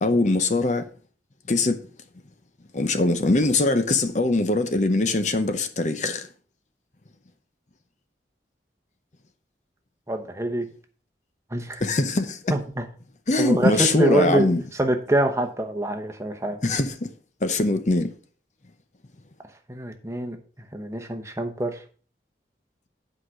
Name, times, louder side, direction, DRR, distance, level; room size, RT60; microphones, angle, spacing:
voice 1, 0.0-0.9 1.5-1.8 2.7-6.3 11.8-12.5 13.3-14.6 16.6-17.1 17.4-18.1, left 2 dB, 40° left, 0.7 m, -22 dB
voice 2, 10.1-10.6 11.5-11.8 12.5-12.8 13.4-14.5 14.8-16.6 19.7-20.4 20.7-21.7, right 1 dB, 15° right, 0.9 m, -25 dB
8.5 x 4.9 x 6.2 m
head